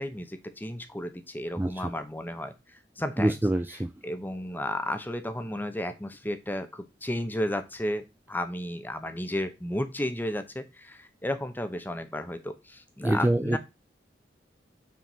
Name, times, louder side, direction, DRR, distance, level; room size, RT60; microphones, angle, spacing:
voice 1, 0.0-3.4 4.0-13.6, left 1 dB, 10° left, 9 dB, 0.9 m, -33 dB
voice 2, 1.6-1.9 3.2-3.9 13.0-13.6, right 1 dB, 10° right, 9 dB, 0.3 m, -25 dB
6.1 x 4.5 x 5.5 m, 0.25 s
head